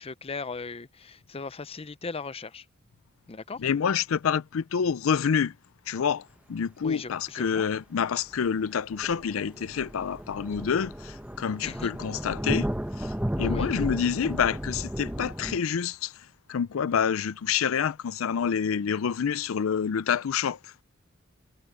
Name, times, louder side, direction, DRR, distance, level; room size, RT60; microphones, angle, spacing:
voice 1, 0.0-2.6 3.3-3.6 6.8-7.7 11.6-11.9 13.4-13.8, left 4 dB, 30° left, 0.6 m, -38 dB
voice 2, 3.6-5.5 5.9-12.7 13.0-16.1 16.5-20.6, left 7 dB, 80° left, 0.4 m, -27 dB
sound 1, 8.4-8.5 8.9-15.6, equal, 5° right, 0.9 m, -33 dB
head